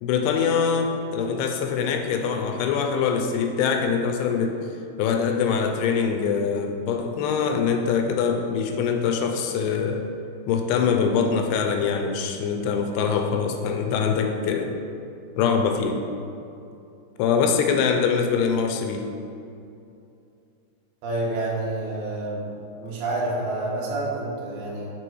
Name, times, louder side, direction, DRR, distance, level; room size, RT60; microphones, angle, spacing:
voice 1, 0.0-4.6 5.0-10.0 10.5-14.7 15.4-15.9 17.2-19.1, left 6 dB, 85° left, 4 dB, 2.6 m, -23 dB
voice 2, 21.0-22.5 22.8-24.9, right 2 dB, 65° right, -6 dB, 2.4 m, -28 dB
6.9 x 3.4 x 4.6 m, 2.6 s
omnidirectional pair, 4.6 m